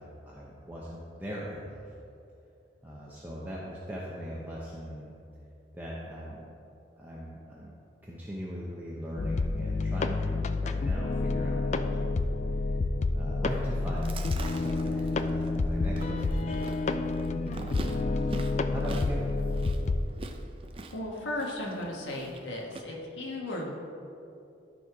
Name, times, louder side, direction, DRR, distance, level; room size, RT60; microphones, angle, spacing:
voice 1, 0.0-1.9 2.8-5.1 5.7-6.4 7.0-7.7 8.0-12.2 12.5-12.6 13.1-17.0 17.3-18.2 18.7-19.2, equal, 10° right, -6 dB, 0.8 m, -40 dB
sound 1, 9.2-20.0, left 3 dB, 40° left, 0.3 m, -29 dB
Chewing mastication, 13.8-22.8, right 2 dB, 30° right, 0.5 m, -44 dB
voice 2, 20.9-23.8, left 1 dB, 85° left, -2 dB, 1.5 m, -35 dB
13.0 x 4.3 x 4.8 m, 2.7 s
head